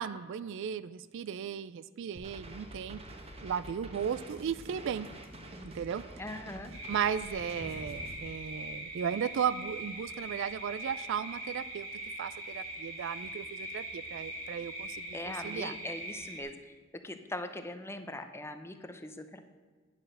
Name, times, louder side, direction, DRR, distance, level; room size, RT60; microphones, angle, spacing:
voice 1, 0.0-3.0 3.4-5.1 5.6-6.0 6.9-11.9 12.2-15.7, right 8 dB, 65° right, 16 dB, 0.3 m, -35 dB
sound 1, 2.2-8.2, right 1 dB, 30° right, 1.1 m, -47 dB
voice 2, 6.2-6.7 15.1-16.7 17.0-19.4, left 1 dB, 10° left, 8 dB, 0.6 m, -41 dB
sound 2, 6.7-16.4, right 1 dB, 85° right, 3.1 m, -41 dB
9.8 x 6.3 x 6.6 m, 1.5 s
head